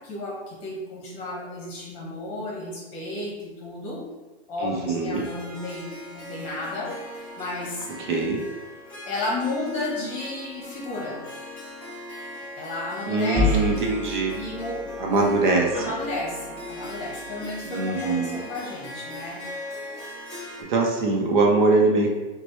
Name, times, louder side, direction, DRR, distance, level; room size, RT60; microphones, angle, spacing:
voice 1, 0.0-4.0 4.5-7.0 7.4-7.9 9.1-11.2 12.6-13.8 14.3-14.9 15.7-19.4, left 2 dB, 30° left, -3 dB, 1.2 m, -33 dB
voice 2, 4.6-5.3 8.1-8.4 13.1-14.3 15.0-15.9 17.7-18.4 20.7-22.1, right 3 dB, 45° right, -1 dB, 0.7 m, -22 dB
Harp, 5.1-20.6, left 1 dB, 5° left, 0.5 m, -38 dB
sound 1, 13.3-17.7, left 2 dB, 10° right, 1.2 m, -31 dB
6.0 x 2.2 x 3.0 m, 1.2 s
hypercardioid pair, 160°, 34 cm